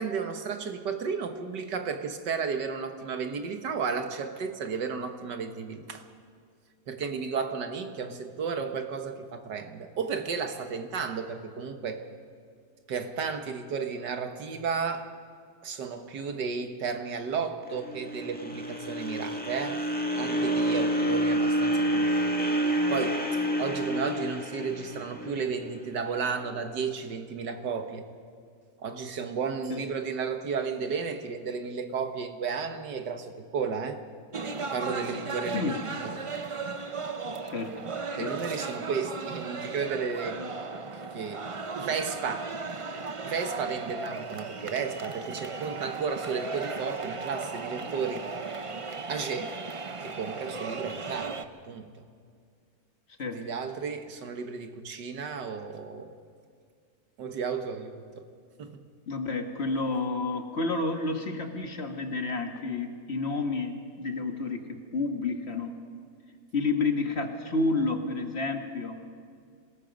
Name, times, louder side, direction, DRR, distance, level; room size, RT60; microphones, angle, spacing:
voice 1, 0.0-6.0 6.9-12.0 12.9-15.1 15.6-19.8 20.2-22.3 22.6-28.0 28.8-34.0 34.7-36.2 38.1-40.4 41.1-42.6 43.2-48.4 49.1-49.6 50.0-51.9 53.3-56.1 57.2-58.3 58.6-58.8, right 5 dB, 90° right, 6 dB, 2.0 m, -33 dB
sound 1, 17.7-25.9, equal, 5° left, 1.4 m, -28 dB
sound 2, 34.3-51.5, right 4 dB, 45° right, 0.4 m, -36 dB
voice 2, 37.4-37.8 38.1-38.4 53.2-53.4 59.1-65.8 66.5-69.0, left 3 dB, 40° left, 4 dB, 1.7 m, -30 dB
26.5 x 19.0 x 5.3 m, 2.2 s
omnidirectional pair, 1.8 m